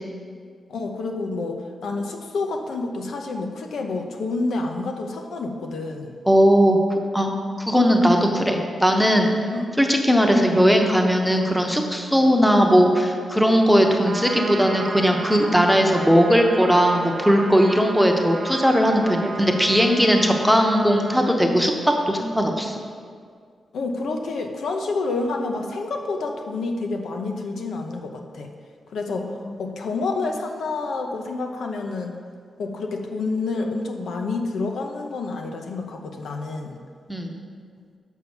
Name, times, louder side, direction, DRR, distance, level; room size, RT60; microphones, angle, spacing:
voice 1, 0.7-6.1 9.5-9.7 23.7-28.5 28.9-29.3 29.6-32.2 32.6-36.8, left 3 dB, 85° left, 3 dB, 0.8 m, -28 dB
voice 2, 6.3-6.8 7.1-7.3 7.6-9.3 9.8-22.8 29.4-29.5 37.1-37.3, equal, ahead, 3 dB, 0.8 m, -18 dB
Trumpet, 14.0-21.3, right 3 dB, 45° right, 0.7 m, -33 dB
6.4 x 5.7 x 7.0 m, 2.1 s
wide cardioid pair, 125°, 0 cm